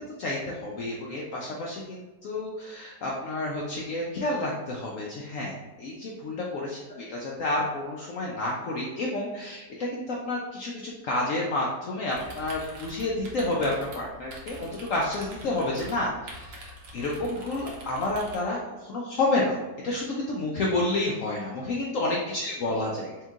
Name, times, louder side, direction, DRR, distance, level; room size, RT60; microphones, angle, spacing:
voice 1, 0.2-14.6 14.9-19.6 19.8-23.1, left 2 dB, 70° left, -3 dB, 0.7 m, -30 dB
sound 1, 12.1-18.4, equal, 80° right, 1.5 m, -44 dB
4.4 x 3.6 x 2.4 m, 1.1 s
omnidirectional pair, 1.9 m